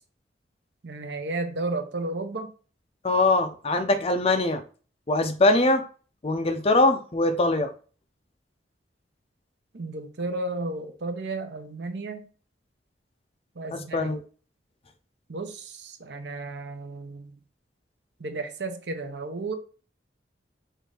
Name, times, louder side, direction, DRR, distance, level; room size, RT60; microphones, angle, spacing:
voice 1, 0.8-2.5 9.7-12.3 13.6-14.1 15.3-17.4 18.2-19.5, right 2 dB, 65° right, 0.7 m, -33 dB
voice 2, 3.0-4.6 5.1-5.8 6.2-7.7 13.7-14.2, left 2 dB, 30° left, 0.5 m, -22 dB
5.3 x 2.6 x 3.8 m
head